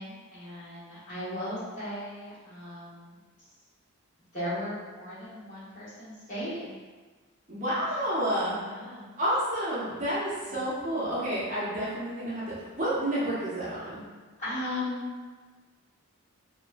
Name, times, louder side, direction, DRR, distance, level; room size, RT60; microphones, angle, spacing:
voice 1, 0.0-3.2 4.3-6.7 8.7-9.1 10.5-10.6 14.4-15.1, left 1 dB, 35° left, -12 dB, 1.2 m, -37 dB
voice 2, 7.5-8.5 9.2-14.0, equal, 35° right, -9 dB, 0.6 m, -30 dB
2.9 x 2.5 x 2.2 m, 1.4 s
head